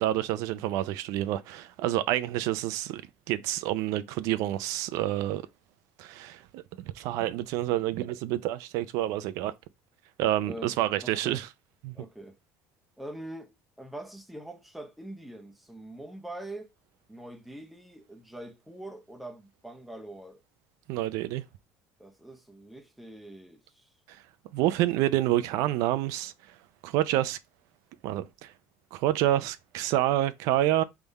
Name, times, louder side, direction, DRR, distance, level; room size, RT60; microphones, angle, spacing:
voice 1, 0.0-3.0 3.3-5.4 6.0-6.6 7.0-9.5 10.2-11.5 11.8-11.9 20.9-21.4 24.1-24.2 24.5-26.3 26.8-27.4 28.0-28.5 28.9-30.8, right 14 dB, 75° right, 0.5 m, -28 dB
voice 2, 10.4-10.8 11.0-11.4 11.9-12.4 13.0-16.7 17.1-20.4 22.0-23.9, right 1 dB, ahead, 0.7 m, -43 dB
3.6 x 3.4 x 4.0 m
cardioid pair, 135°, 6 cm